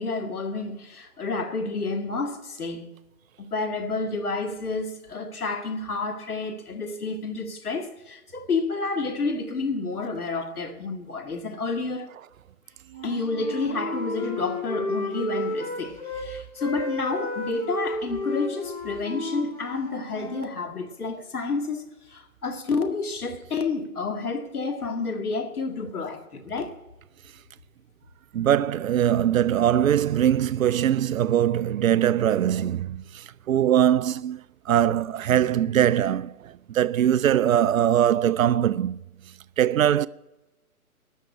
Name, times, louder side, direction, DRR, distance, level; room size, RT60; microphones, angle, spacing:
voice 1, 0.0-2.9 3.4-12.1 13.0-26.8, left 3 dB, 85° left, 2.0 m, -30 dB
Wind instrument woodwind instrument, 12.9-16.3 16.6-20.4, left 1 dB, 25° left, 4.4 m, -32 dB
voice 2, 28.3-34.4 34.7-39.0 39.6-40.1, right 10 dB, 70° right, 0.5 m, -22 dB
12.5 x 6.5 x 8.7 m
hypercardioid pair, 155°, 43 cm